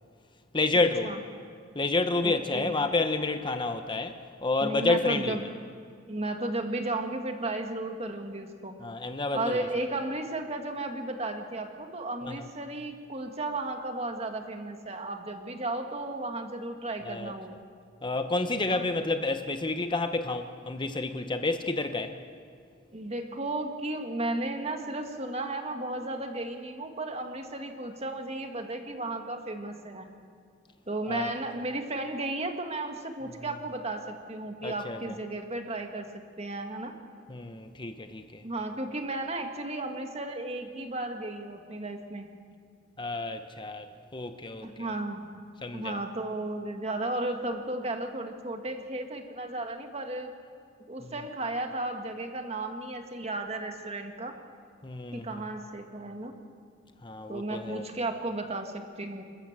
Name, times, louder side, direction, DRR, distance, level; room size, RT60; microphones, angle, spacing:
voice 1, 0.5-1.1 1.7-5.5 8.8-9.7 12.2-12.5 17.0-17.3 18.0-22.2 31.1-31.3 34.6-35.2 37.3-38.4 43.0-44.9 45.6-46.0 51.0-51.1 54.8-55.4 57.0-57.9, left 3 dB, 25° left, 0.9 m, -30 dB
voice 2, 2.2-2.7 4.6-5.4 6.1-8.8 9.3-17.5 18.7-18.8 22.9-30.1 30.9-36.9 38.4-42.3 44.6-45.3 45.7-50.3 50.9-54.4 55.1-56.3 57.3-59.2, right 2 dB, 35° right, 1.8 m, -34 dB
28.0 x 14.0 x 7.4 m
head